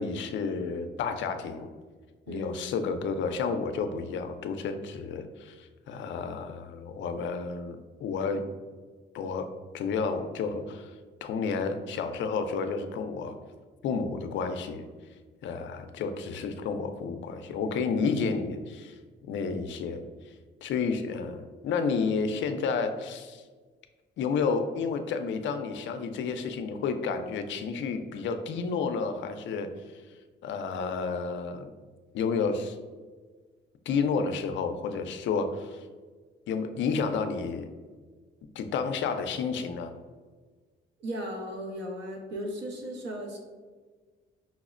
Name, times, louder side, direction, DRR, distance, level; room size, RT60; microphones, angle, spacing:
voice 1, 0.0-1.7 2.3-8.5 9.1-9.5 9.7-10.9 11.2-13.3 13.8-14.8 15.4-19.0 19.2-20.0 20.6-23.4 24.2-29.7 30.4-31.7 32.1-32.8 33.9-35.8 36.5-37.7 38.6-39.9, left 5 dB, 70° left, 7 dB, 0.4 m, -31 dB
voice 2, 2.3-2.6 41.0-43.4, equal, 65° right, 0 dB, 0.7 m, -36 dB
5.6 x 2.0 x 2.4 m, 1.4 s
cardioid pair, 90°, 20 cm